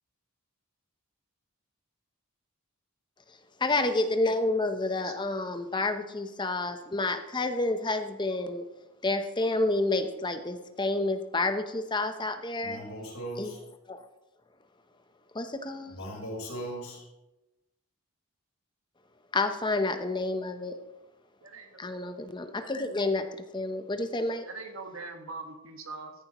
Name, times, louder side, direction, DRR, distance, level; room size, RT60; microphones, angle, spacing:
voice 1, 3.6-8.6 9.0-12.8 13.4-13.5 13.9-14.0 15.3-16.0 19.3-20.8 21.8-23.2 23.5-24.4, left 2 dB, 20° left, 7 dB, 0.8 m, -29 dB
voice 2, 12.6-13.6 15.9-17.0, right 1 dB, 75° left, -2 dB, 4.3 m, -38 dB
voice 3, 21.4-21.8 24.4-26.1, right 3 dB, 65° right, 4 dB, 1.6 m, -42 dB
15.0 x 10.5 x 3.0 m, 0.98 s
head